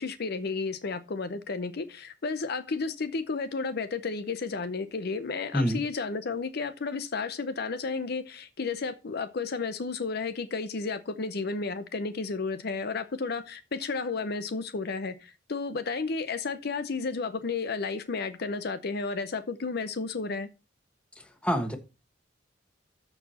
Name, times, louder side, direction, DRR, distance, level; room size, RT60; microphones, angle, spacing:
voice 1, 0.0-20.5, left 4 dB, 55° left, 0.7 m, -32 dB
voice 2, 21.4-21.8, equal, 5° left, 1.3 m, -26 dB
13.5 x 4.7 x 4.2 m
head